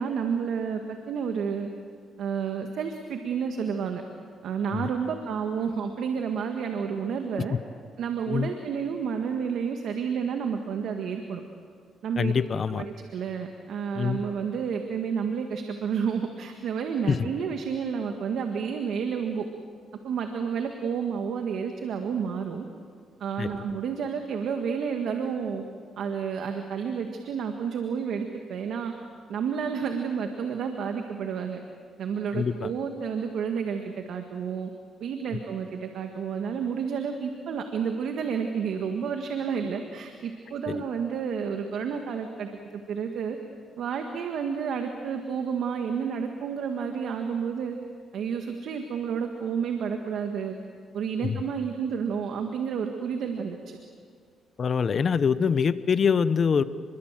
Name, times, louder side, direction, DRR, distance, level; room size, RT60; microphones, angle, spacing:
voice 1, 0.0-1.7 2.2-4.0 4.4-7.6 8.0-11.4 12.0-12.3 12.7-19.5 20.0-22.7 23.2-25.6 26.0-28.9 29.3-31.6 32.0-34.7 35.0-43.4 43.8-47.8 48.1-50.6 50.9-53.8, right 6 dB, 70° right, 5 dB, 1.8 m, -30 dB
voice 2, 12.2-12.8 13.9-14.2 17.1-17.3 23.4-23.6 32.3-32.7 40.7-40.8 51.2-51.4 54.6-56.6, left 6 dB, 45° left, 14 dB, 1.0 m, -24 dB
29.5 x 22.5 x 7.6 m, 2.1 s
cardioid pair, 90°, 0 cm